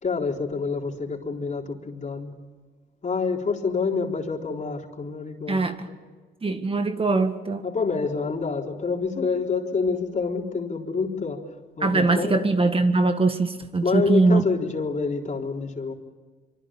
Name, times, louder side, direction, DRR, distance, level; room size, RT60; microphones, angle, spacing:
voice 1, 0.0-2.3 3.0-6.0 7.6-11.5 11.8-12.4 13.8-15.9, left 4 dB, 40° left, 2 dB, 4.0 m, -27 dB
voice 2, 5.5-5.9 6.4-7.6 11.8-14.5, right 3 dB, 30° right, 7 dB, 1.8 m, -22 dB
25.0 x 24.5 x 9.0 m, 1.4 s
cardioid pair, 90°, 20 cm